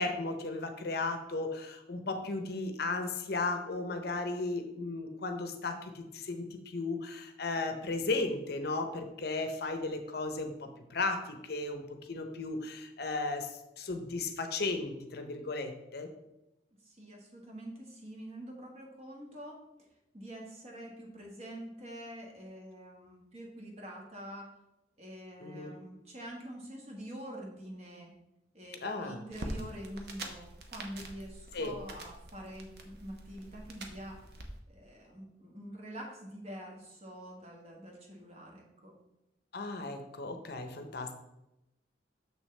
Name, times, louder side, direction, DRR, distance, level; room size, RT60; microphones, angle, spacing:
voice 1, 0.0-16.1 25.4-25.7 28.8-29.2 31.5-31.8 39.5-41.1, left 3 dB, 60° left, 7 dB, 0.7 m, -35 dB
voice 2, 16.8-19.6 20.1-24.5 25.0-28.1 28.5-34.2 34.7-38.9, equal, 35° right, 0 dB, 1.4 m, -46 dB
sound 1, 29.3-34.5, right 1 dB, 60° right, 0.9 m, -45 dB
6.8 x 6.3 x 3.2 m, 0.92 s
head